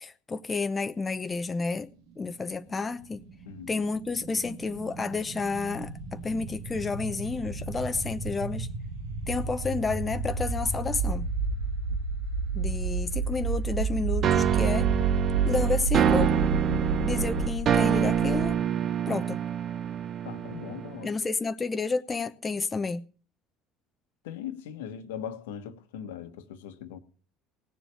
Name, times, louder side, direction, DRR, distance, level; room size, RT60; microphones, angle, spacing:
voice 1, 0.0-1.9 2.2-3.2 3.7-8.7 9.3-11.3 12.5-14.9 15.5-16.4 17.0-18.6 19.1-19.4 21.0-23.0, left 4 dB, 25° left, 0.8 m, -30 dB
sound 1, 2.6-18.5, right 4 dB, 75° right, 2.2 m, -31 dB
sound 2, 14.2-21.1, right 9 dB, 45° right, 0.8 m, -26 dB
voice 2, 16.7-17.1 20.2-21.1 24.2-27.0, left 8 dB, 75° left, 1.3 m, -39 dB
18.0 x 7.0 x 7.0 m
figure-of-eight pair, 60°, 0 cm